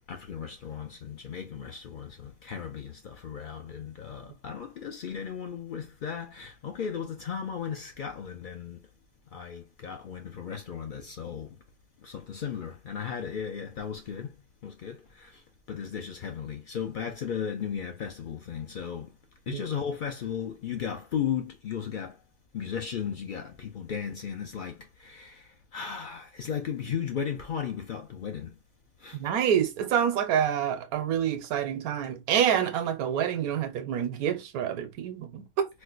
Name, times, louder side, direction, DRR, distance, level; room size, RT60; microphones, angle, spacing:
voice 1, 0.1-8.8 9.3-11.5 12.0-14.3 14.6-15.4 15.7-19.1 19.5-22.1 22.5-28.5 29.0-29.2, left 7 dB, 85° left, 0.4 m, -35 dB
voice 2, 29.1-35.7, right 9 dB, 90° right, 1.2 m, -27 dB
4.3 x 2.2 x 2.4 m
omnidirectional pair, 1.5 m